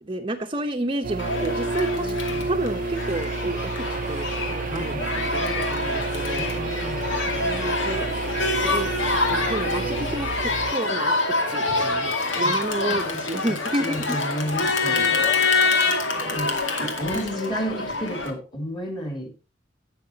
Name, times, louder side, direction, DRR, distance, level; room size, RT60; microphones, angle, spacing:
voice 1, 0.0-2.1 2.4-6.4 7.3-8.1 8.5-8.9 9.3-11.1 11.5-14.2 14.9-15.3 16.3-16.6, right 2 dB, 30° right, 4 dB, 0.9 m, -30 dB
sound 1, 1.0-10.7, right 3 dB, 45° right, 0.5 m, -30 dB
Crowd, 1.2-18.3, left 3 dB, 85° left, 2.3 m, -26 dB
voice 2, 2.0-2.4 4.7-5.0 6.3-7.0 12.4-12.6 12.8-15.1 16.2-16.5 16.8-19.3, equal, 25° left, 4 dB, 2.9 m, -32 dB
17.5 x 6.8 x 2.8 m, 0.29 s
head